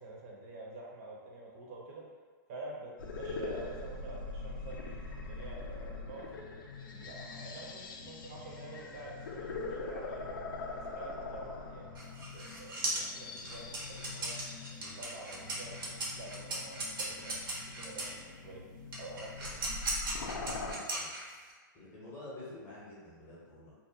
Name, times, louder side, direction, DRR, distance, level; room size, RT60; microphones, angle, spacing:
voice 1, 0.0-2.1 2.5-6.3 6.9-10.3 10.7-14.4 14.7-18.6 19.0-19.7, right 2 dB, 45° right, -3 dB, 0.5 m, -48 dB
sound 1, 3.0-20.7, left 3 dB, 85° left, 0.4 m, -43 dB
sound 2, 11.9-18.2 18.9-21.5, right 2 dB, 90° right, 0.8 m, -38 dB
voice 2, 20.6-21.1 21.7-23.7, left 2 dB, 20° left, -7 dB, 0.7 m, -48 dB
2.5 x 2.0 x 2.7 m, 1.5 s
hypercardioid pair, 150°, 11 cm